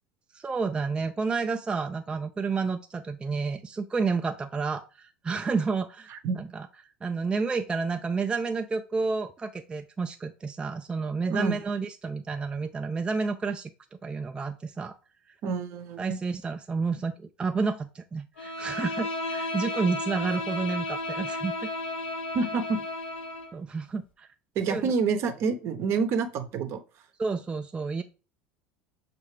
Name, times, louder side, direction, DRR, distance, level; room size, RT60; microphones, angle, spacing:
voice 1, 0.3-6.7 7.0-13.7 14.0-15.0 16.0-21.7 23.5-24.3 24.7-24.9 27.2-28.0, right 4 dB, 15° right, 6 dB, 0.4 m, -30 dB
voice 2, 15.4-16.2 22.3-22.8 24.5-26.8, right 5 dB, 50° right, 8 dB, 0.8 m, -28 dB
Bowed string instrument, 18.4-23.5, left 2 dB, 80° left, 0.9 m, -33 dB
6.3 x 2.5 x 3.2 m, 0.34 s
hypercardioid pair, 75°, 6 cm